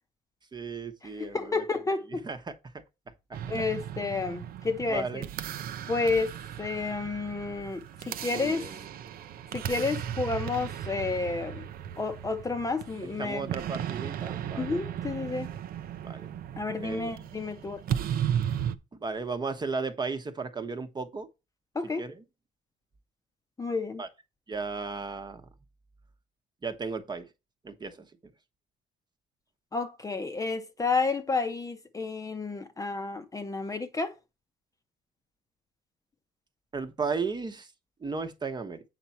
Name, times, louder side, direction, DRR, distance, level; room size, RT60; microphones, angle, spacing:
voice 1, 0.5-1.6 2.1-2.6 4.9-5.3 8.3-8.9 13.2-14.8 16.0-16.4 16.8-17.1 18.9-21.3 22.0-22.2 24.0-24.1 24.5-25.5 26.6-27.3 27.6-28.0 36.7-37.7 38.0-38.8, right 4 dB, 25° right, 1.1 m, -35 dB
voice 2, 1.0-2.3 3.5-5.2 5.9-6.3 6.6-8.7 9.5-11.7 12.0-13.5 14.6-15.5 16.6-18.0 21.7-22.1 23.6-24.0 29.7-34.1, left 3 dB, 20° left, 0.8 m, -31 dB
sound 1, 3.3-18.8, right 10 dB, 60° right, 0.7 m, -36 dB
8.2 x 5.9 x 4.3 m
cardioid pair, 110°, 17 cm